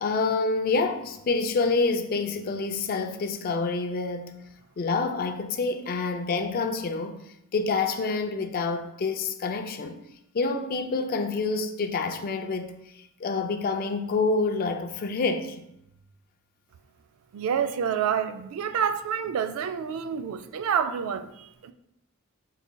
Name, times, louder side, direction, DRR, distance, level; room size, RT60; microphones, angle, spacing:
voice 1, 0.0-4.3 4.8-10.0 10.3-15.7, left 3 dB, 45° left, 0.4 m, -27 dB
voice 2, 17.3-21.7, right 7 dB, 70° right, 0.3 m, -28 dB
4.6 x 4.0 x 2.2 m
head